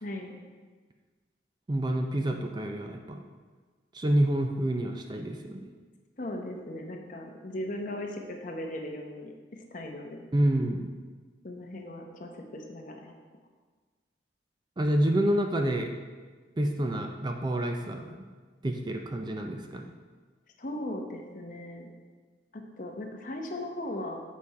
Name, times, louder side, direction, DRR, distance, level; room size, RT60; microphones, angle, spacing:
voice 1, 0.0-0.4 6.2-10.2 11.4-13.1 20.6-21.9 22.5-24.2, left 1 dB, 45° left, 2 dB, 0.8 m, -38 dB
voice 2, 1.7-3.2 3.9-5.6 10.3-10.9 14.8-15.9 16.6-18.2 18.6-19.9, right 1 dB, 25° right, 4 dB, 0.4 m, -28 dB
7.4 x 4.2 x 4.7 m, 1.4 s
head